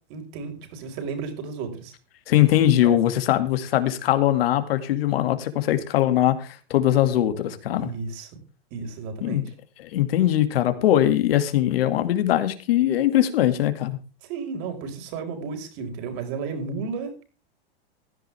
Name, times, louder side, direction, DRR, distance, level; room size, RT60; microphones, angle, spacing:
voice 1, 0.1-1.9 2.3-3.0 7.8-8.3 8.7-9.4 14.2-17.3, right 5 dB, 45° right, 6 dB, 5.0 m, -33 dB
voice 2, 2.3-7.9 9.2-9.5 9.9-14.0, left 12 dB, 70° left, 9 dB, 2.3 m, -21 dB
16.0 x 12.0 x 3.5 m, 0.35 s
hypercardioid pair, 135°, 31 cm